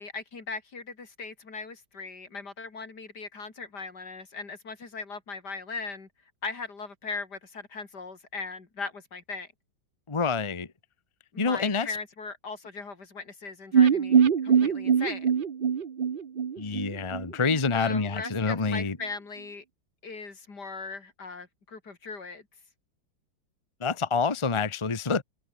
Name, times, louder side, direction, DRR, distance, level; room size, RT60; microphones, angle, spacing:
voice 1, 0.0-6.1 6.4-9.5 11.3-15.3 17.7-19.6 20.0-22.4, left 4 dB, 70° left, 3.9 m, -39 dB
voice 2, 10.1-10.7 11.4-11.9 16.6-19.0 23.8-25.2, left 4 dB, 20° left, 1.1 m, -27 dB
sound 1, 13.7-17.6 17.9-18.0 18.3-18.4, right 7 dB, 40° right, 0.8 m, -23 dB
omnidirectional pair, 1.8 m